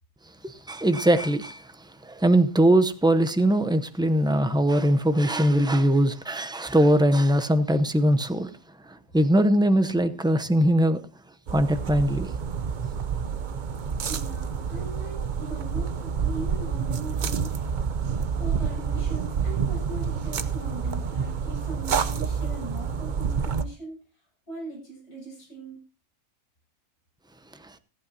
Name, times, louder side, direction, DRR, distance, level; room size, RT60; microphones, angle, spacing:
voice 1, 0.4-8.5 8.8-11.0 11.5-12.3 27.6-27.8, right 1 dB, 5° right, 0.3 m, -21 dB
sound 1, 11.5-23.6, right 6 dB, 45° right, 0.6 m, -28 dB
voice 2, 13.9-17.6 18.3-24.0 24.5-25.8, right 2 dB, 45° left, 8.4 m, -40 dB
26.0 x 8.7 x 2.7 m
omnidirectional pair, 1.5 m